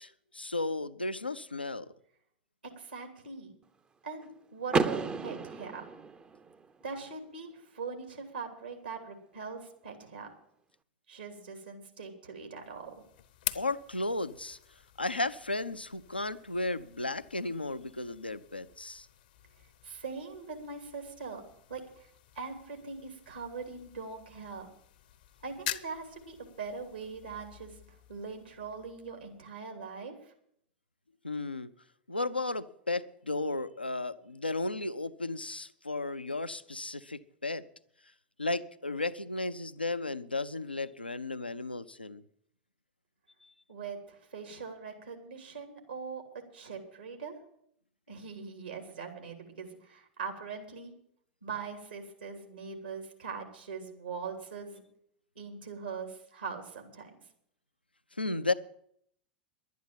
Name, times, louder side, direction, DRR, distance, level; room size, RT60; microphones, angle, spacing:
voice 1, 0.0-1.9 13.5-14.6 15.0-19.1 31.2-31.7 32.1-37.7 38.4-42.2 43.4-43.5 58.1-58.5, left 2 dB, 85° left, 0.6 m, -34 dB
voice 2, 2.6-3.6 4.0-5.9 6.8-10.3 11.1-13.0 19.8-22.1 22.3-24.7 25.4-30.3 43.7-47.3 48.1-50.9 51.4-54.8 55.3-57.2, right 5 dB, 75° right, 3.0 m, -42 dB
Car / Door, 4.7-6.6, right 4 dB, 20° right, 0.6 m, -32 dB
sound 1, 12.6-29.5, left 12 dB, 55° left, 0.8 m, -47 dB
11.5 x 9.3 x 8.7 m
figure-of-eight pair, 90°, 5 cm